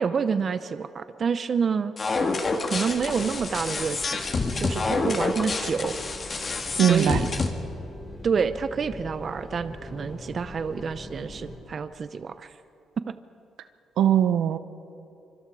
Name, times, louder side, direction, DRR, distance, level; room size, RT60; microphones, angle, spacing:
voice 1, 0.0-1.9 2.6-4.2 4.6-5.9 6.9-7.3 8.2-12.5 13.1-13.2, right 6 dB, 45° right, 12 dB, 0.7 m, -28 dB
sound 1, 2.0-7.5, left 3 dB, 40° left, 2.2 m, -28 dB
sound 2, 2.9-11.6, left 1 dB, 15° left, 5.9 m, -42 dB
voice 2, 6.8-7.2 14.0-14.6, right 10 dB, 80° right, 11 dB, 0.9 m, -20 dB
25.5 x 25.0 x 4.9 m, 2.9 s
cardioid pair, 90°, 0 cm